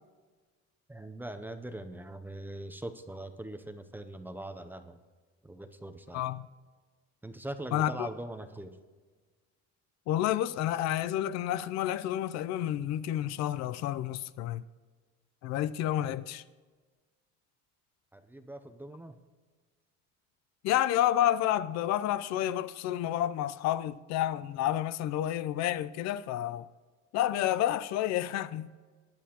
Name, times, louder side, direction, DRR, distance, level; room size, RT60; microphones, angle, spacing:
voice 1, 0.9-5.0 5.4-6.2 7.2-8.8 18.1-19.2, right 1 dB, 5° right, 0.5 m, -42 dB
voice 2, 7.7-8.1 10.1-14.6 15.4-16.4 20.6-26.7 27.1-28.8, left 12 dB, 65° left, 0.5 m, -30 dB
19.5 x 10.5 x 2.9 m
cardioid pair, 165°, 29 cm